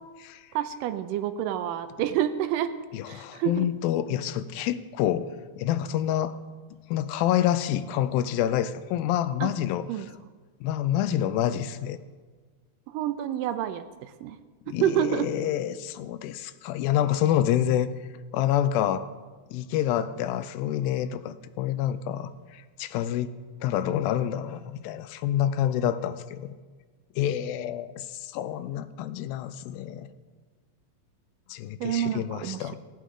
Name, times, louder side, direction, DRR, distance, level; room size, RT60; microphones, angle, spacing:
voice 1, 0.6-2.7 3.1-3.7 9.4-9.5 9.9-10.1 12.9-14.4 14.8-15.3 31.8-32.6, right 11 dB, 80° right, 10 dB, 2.1 m, -28 dB
voice 2, 2.9-5.3 5.6-6.4 6.9-10.1 10.6-12.0 14.7-17.9 18.3-19.1 19.5-23.3 23.6-26.6 27.2-30.1 31.5-32.8, left 11 dB, 85° left, 13 dB, 2.4 m, -27 dB
18.0 x 9.0 x 3.7 m, 1.4 s
omnidirectional pair, 4.1 m